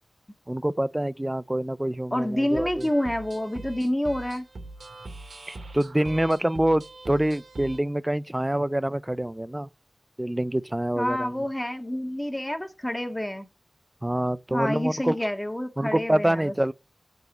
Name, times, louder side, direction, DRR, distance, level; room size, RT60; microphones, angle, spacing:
voice 1, 0.5-2.9 5.5-9.7 10.2-11.5 14.0-15.2 15.8-16.7, right 1 dB, 15° right, 0.5 m, -26 dB
voice 2, 2.1-4.4 11.0-13.5 14.5-16.5, left 1 dB, 15° left, 1.6 m, -28 dB
sound 1, 2.5-7.8, right 2 dB, 85° right, 2.3 m, -42 dB
7.9 x 4.8 x 7.2 m
wide cardioid pair, 65°, 0 cm